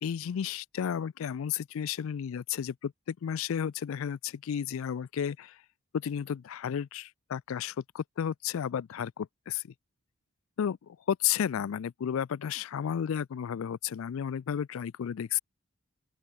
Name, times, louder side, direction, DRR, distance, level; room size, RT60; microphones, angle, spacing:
voice 1, 0.0-5.6 5.9-9.6 10.6-15.4, left 8 dB, 75° left, 0.3 m, -32 dB
open air
head